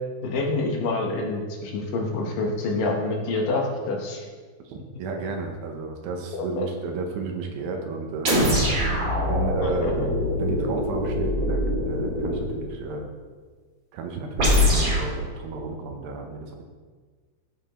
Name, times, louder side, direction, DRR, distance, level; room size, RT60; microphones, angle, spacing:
voice 1, 0.2-4.3 6.3-6.7 9.6-10.1, left 3 dB, 70° left, 0 dB, 2.5 m, -27 dB
voice 2, 4.7-8.9 9.2-13.1 13.9-16.6, right 4 dB, 75° right, 3 dB, 2.5 m, -33 dB
sound 1, 8.3-12.6 14.4-15.1, left 1 dB, 45° right, 2.5 m, -23 dB
15.0 x 5.2 x 3.0 m, 1.5 s
omnidirectional pair, 4.4 m